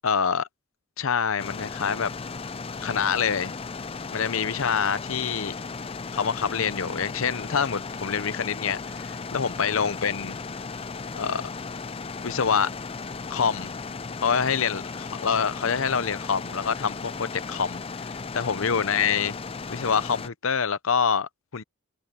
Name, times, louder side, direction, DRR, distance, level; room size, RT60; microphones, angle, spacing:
voice 1, 0.0-0.5 1.0-2.1 2.8-3.5 4.1-5.5 6.1-10.4 11.2-11.4 12.2-12.7 13.3-13.7 14.2-19.4 19.7-21.6, left 6 dB, 65° left, 0.7 m, -26 dB
sound 1, 1.4-20.3, left 4 dB, 25° left, 0.5 m, -36 dB
head